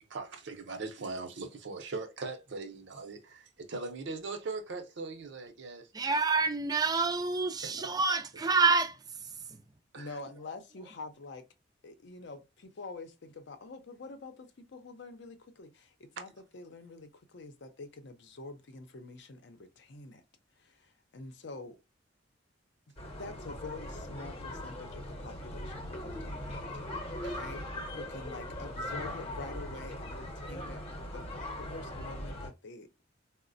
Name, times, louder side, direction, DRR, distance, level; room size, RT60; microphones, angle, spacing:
voice 1, 0.0-5.9 7.6-7.9 9.9-10.2 16.2-16.3 27.2-27.4, right 3 dB, 70° right, 0.7 m, -40 dB
voice 2, 5.9-9.6, right 4 dB, 20° right, 0.4 m, -28 dB
voice 3, 10.0-11.4 11.8-20.2 20.6-21.8 23.2-26.6 27.4-27.6 28.0-31.3 31.6-33.1, left 3 dB, 65° left, 0.6 m, -46 dB
sound 1, 23.0-32.5, left 1 dB, 30° left, 0.8 m, -40 dB
4.0 x 2.1 x 2.5 m
head